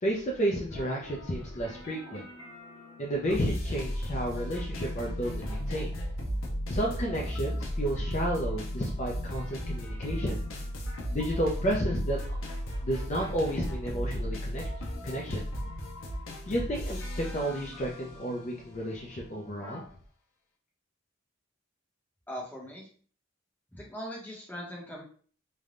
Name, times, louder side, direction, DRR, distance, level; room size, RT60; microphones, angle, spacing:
voice 1, 0.0-2.3 3.0-6.0 6.7-10.4 11.1-12.2 12.8-14.6 15.0-15.5 16.5-19.8, equal, 35° left, -2 dB, 0.4 m, -31 dB
sound 1, 0.7-19.9, equal, 85° left, 0.6 m, -36 dB
voice 2, 22.3-22.9 23.7-25.0, equal, 10° left, -3 dB, 0.8 m, -40 dB
3.2 x 2.2 x 2.5 m, 0.43 s
head